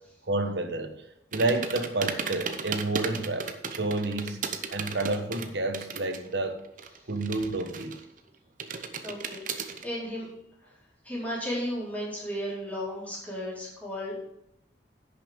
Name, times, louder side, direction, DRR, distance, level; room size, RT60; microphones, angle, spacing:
voice 1, 0.2-0.9 1.3-4.4 4.7-6.6 7.1-8.0, right 2 dB, 75° right, 7 dB, 1.2 m, -29 dB
sound 1, 1.3-6.3 6.6-8.2 8.6-9.8, right 5 dB, 50° right, 0.9 m, -35 dB
voice 2, 9.0-10.3 10.6-10.7 11.0-14.2, equal, 10° left, -7 dB, 4.3 m, -34 dB
10.5 x 6.7 x 5.2 m, 0.83 s
head